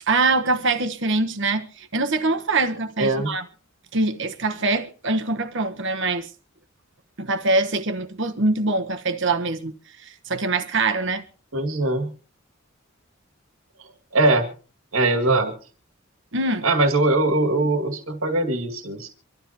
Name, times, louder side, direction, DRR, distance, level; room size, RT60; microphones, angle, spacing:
voice 1, 0.1-3.4 3.9-6.3 7.2-9.7 10.0-11.2 16.3-16.6, right 3 dB, 60° right, 1.2 m, -23 dB
voice 2, 3.0-3.3 11.5-12.1 13.8-14.5 14.9-15.5 16.6-19.1, right 2 dB, 85° right, 2.1 m, -21 dB
25.5 x 12.5 x 2.9 m
head